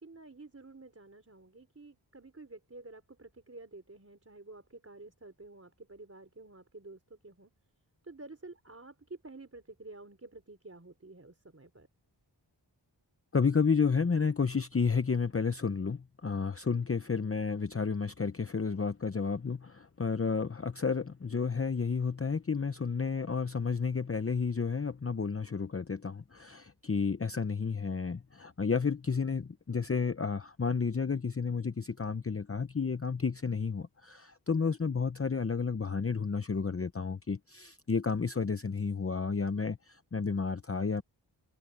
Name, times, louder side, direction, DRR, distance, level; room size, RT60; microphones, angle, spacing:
voice 1, 0.0-7.5 8.0-11.9, right 2 dB, 30° right, 4.2 m, -50 dB
voice 2, 13.3-41.0, left 5 dB, 30° left, 0.8 m, -31 dB
wide cardioid pair, 85°, 45 cm